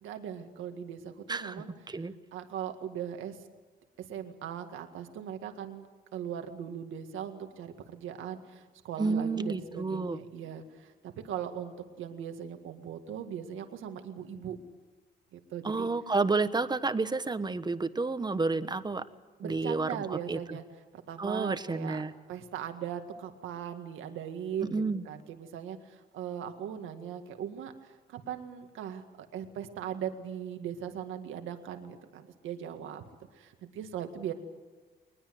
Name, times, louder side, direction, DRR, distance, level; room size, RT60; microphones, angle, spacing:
voice 1, 0.0-1.7 2.3-3.4 4.0-5.9 6.1-14.6 15.3-15.9 19.4-20.6 20.9-22.0 22.3-33.0 33.3-34.3, right 9 dB, 85° right, 6 dB, 1.9 m, -39 dB
voice 2, 1.3-2.1 9.0-10.2 15.6-19.1 19.4-20.6 21.2-22.1 24.6-25.0, right 3 dB, 20° right, 11 dB, 1.2 m, -30 dB
21.5 x 21.0 x 7.9 m, 1.4 s
cardioid pair, 90°, 20 cm